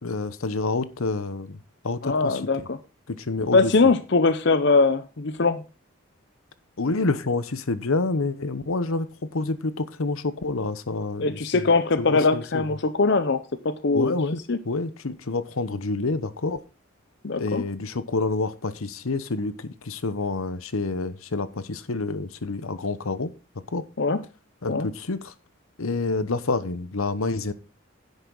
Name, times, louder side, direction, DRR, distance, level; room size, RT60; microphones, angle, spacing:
voice 1, 0.0-2.7 3.1-3.7 6.8-11.7 12.0-12.8 13.9-16.6 17.4-23.3 23.7-23.9 24.6-25.3 25.8-27.5, left 3 dB, 80° left, 0.9 m, -28 dB
voice 2, 2.0-2.8 3.5-5.6 11.2-14.1 14.5-14.6 17.2-17.6 24.0-24.2 24.7-24.9, left 3 dB, 55° left, 0.7 m, -21 dB
10.5 x 8.1 x 3.9 m
head